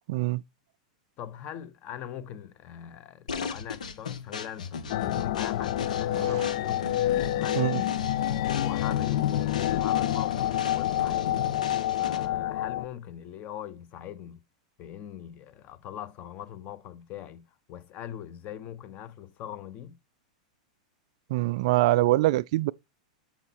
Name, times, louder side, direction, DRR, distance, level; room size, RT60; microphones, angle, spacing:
voice 1, 0.1-0.4 6.2-6.4 7.5-7.8 21.3-22.7, right 17 dB, 60° right, 0.3 m, -24 dB
voice 2, 1.2-6.9 7.4-8.0 8.5-11.4 11.9-14.4 14.8-20.0, left 10 dB, 40° left, 1.0 m, -41 dB
sound 1, 3.3-12.4, left 5 dB, 90° left, 1.3 m, -37 dB
sound 2, 4.9-12.9, left 13 dB, 60° left, 0.4 m, -28 dB
7.2 x 5.4 x 4.2 m
hypercardioid pair, 120°, 4 cm